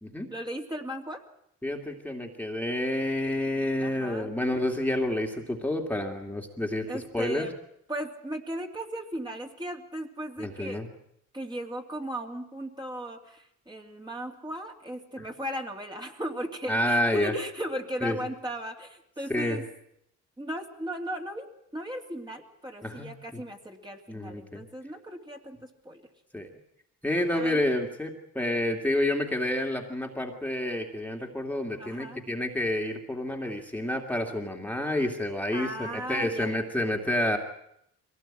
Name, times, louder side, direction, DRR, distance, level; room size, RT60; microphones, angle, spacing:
voice 1, 0.3-1.2 3.8-4.3 6.9-7.5 7.9-10.8 11.3-19.6 20.4-21.5 21.7-25.6 25.8-26.0 27.3-27.6 31.8-32.2 35.5-36.5, equal, 15° right, 2 dB, 2.9 m, -36 dB
voice 2, 1.6-7.5 10.4-10.9 16.7-17.3 18.0-18.2 19.3-19.6 22.8-23.4 24.1-24.6 26.3-26.5 27.0-37.4, left 1 dB, 5° left, 2 dB, 2.5 m, -29 dB
22.5 x 18.0 x 8.9 m, 0.74 s
cardioid pair, 90°, 30 cm